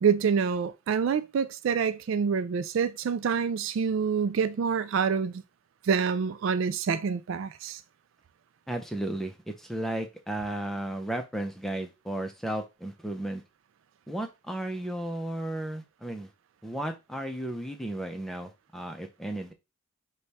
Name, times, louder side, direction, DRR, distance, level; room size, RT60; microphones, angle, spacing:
voice 1, 0.0-5.4 5.8-7.8, right 6 dB, 65° right, 0.3 m, -27 dB
voice 2, 8.7-13.4 14.1-16.3 16.6-19.5, right 1 dB, ahead, 0.5 m, -34 dB
5.0 x 2.3 x 4.1 m
head